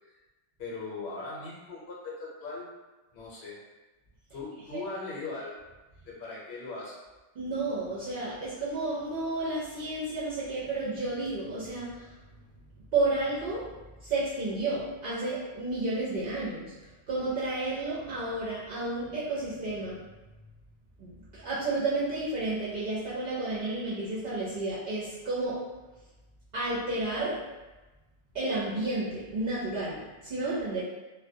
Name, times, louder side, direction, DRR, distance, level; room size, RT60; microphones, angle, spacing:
voice 1, 0.6-2.7 3.1-3.5 4.3-5.6 6.0-7.0, left 3 dB, 70° left, -5 dB, 0.9 m, -39 dB
voice 2, 7.4-12.1 12.9-13.7 14.0-16.7 17.1-20.0 21.0-25.6 26.5-27.4 28.3-30.8, right 2 dB, 60° right, -9 dB, 0.7 m, -31 dB
2.2 x 2.1 x 2.6 m, 1.1 s
omnidirectional pair, 1.1 m